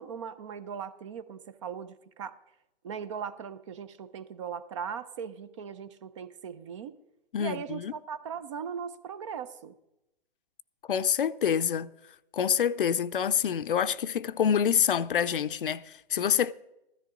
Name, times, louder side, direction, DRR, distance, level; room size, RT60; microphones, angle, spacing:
voice 1, 0.0-2.4 2.8-7.0 7.4-9.8, right 7 dB, 30° right, 0.6 m, -39 dB
voice 2, 7.3-7.9 10.9-11.9 12.3-16.5, left 8 dB, 60° left, 0.7 m, -26 dB
15.5 x 13.5 x 3.8 m
hypercardioid pair, 140°, 30 cm